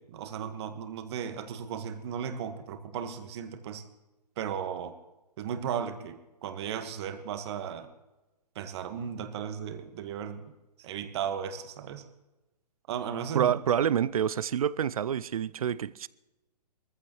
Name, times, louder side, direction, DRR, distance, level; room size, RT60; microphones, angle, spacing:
voice 1, 0.0-3.8 4.4-4.9 5.4-7.9 8.5-10.4 10.8-12.0 12.9-13.5, right 8 dB, 40° right, 1.6 m, -35 dB
voice 2, 13.3-16.1, right 9 dB, 60° right, 0.5 m, -27 dB
22.0 x 14.5 x 3.1 m
figure-of-eight pair, 130°, 21 cm